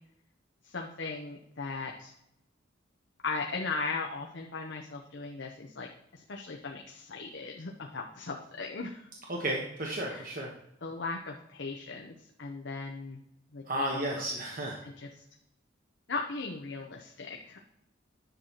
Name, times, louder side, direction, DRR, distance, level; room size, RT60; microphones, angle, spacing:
voice 1, 0.6-2.1 3.2-5.9 6.1-9.1 10.1-10.2 10.8-13.2 13.5-13.6 13.9-14.4 14.8-15.2 16.1-17.6, left 4 dB, 65° left, 1 dB, 0.8 m, -38 dB
voice 2, 9.3-10.5 13.7-14.8, right 1 dB, 45° right, -1 dB, 1.2 m, -33 dB
10.0 x 6.5 x 2.9 m, 0.80 s
head